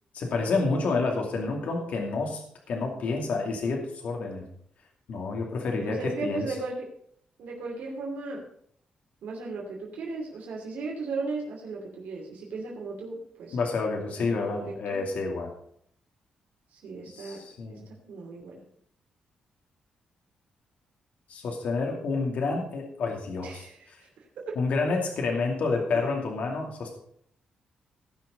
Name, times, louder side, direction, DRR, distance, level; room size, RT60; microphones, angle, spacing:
voice 1, 0.1-2.4 2.7-4.4 5.1-6.4 13.5-15.5 17.1-17.8 21.3-24.0 24.6-26.9, left 3 dB, 65° left, 1 dB, 2.5 m, -29 dB
voice 2, 5.8-6.9 7.4-8.4 9.2-13.6 14.2-15.0 16.7-17.4 17.7-18.6 23.4-24.6, right 3 dB, 80° right, -1 dB, 2.8 m, -36 dB
17.0 x 6.2 x 5.3 m, 0.65 s
cardioid pair, 125°, 3 cm